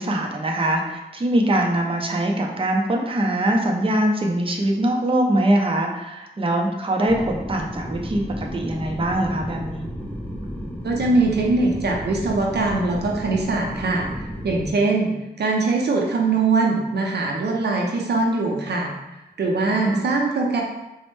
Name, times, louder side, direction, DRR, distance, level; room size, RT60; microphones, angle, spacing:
voice 1, 0.0-9.9 19.7-20.0, right 1 dB, 30° right, 0 dB, 0.6 m, -22 dB
sound 1, 7.1-14.7, equal, 10° left, 0.7 m, -33 dB
voice 2, 10.8-14.1 14.4-15.1 15.4-18.9 19.4-20.6, right 3 dB, 75° right, 0 dB, 0.5 m, -22 dB
4.1 x 2.1 x 3.1 m, 0.96 s
cardioid pair, 55°, 17 cm